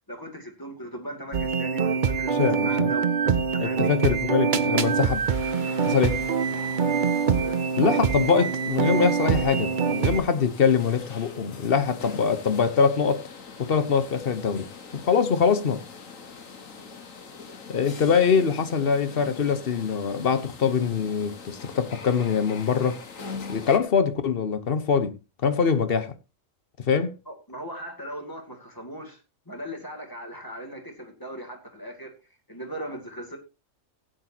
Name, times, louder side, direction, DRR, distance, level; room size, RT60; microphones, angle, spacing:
voice 1, 0.1-3.1 3.5-3.9 7.4-7.6 16.7-16.9 27.3-32.1 32.5-33.4, right 1 dB, 15° left, 2.5 m, -38 dB
sound 1, 1.3-10.2, right 6 dB, 45° right, 0.8 m, -24 dB
voice 2, 2.3-2.9 3.6-5.3 5.8-6.2 7.8-13.2 13.6-14.7 14.9-15.8 17.7-23.0 23.5-26.1 26.9-27.1, left 6 dB, 50° left, 1.2 m, -23 dB
sound 2, 4.8-23.8, left 5 dB, 90° left, 1.8 m, -43 dB
16.5 x 9.2 x 2.9 m
omnidirectional pair, 1.3 m